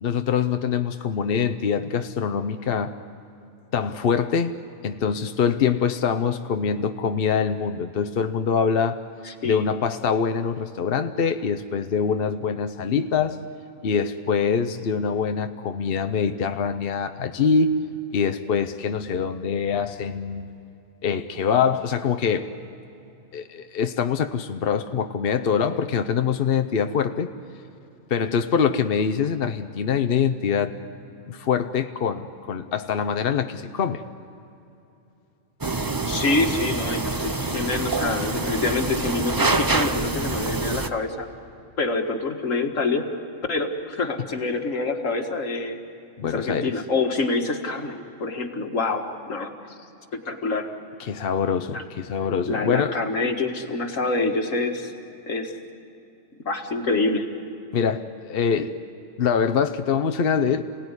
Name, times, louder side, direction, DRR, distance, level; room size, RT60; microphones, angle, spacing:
voice 1, 0.0-3.0 3.7-4.6 4.8-9.0 9.4-13.4 13.8-17.8 18.1-20.5 21.0-22.5 23.3-27.3 28.1-30.8 31.3-34.0 46.2-46.7 51.0-53.0 57.7-58.7 59.2-60.6, left 6 dB, 50° left, 8 dB, 0.9 m, -24 dB
voice 2, 9.2-9.7 36.1-41.3 41.8-43.1 43.5-45.8 46.2-49.5 50.3-50.7 51.7-51.8 52.5-54.9 55.3-55.5 56.5-57.3, left 3 dB, 70° left, 4 dB, 2.1 m, -26 dB
sound 1, 35.6-40.9, right 3 dB, 20° right, 0.6 m, -26 dB
28.0 x 18.0 x 9.7 m, 2.8 s
omnidirectional pair, 1.4 m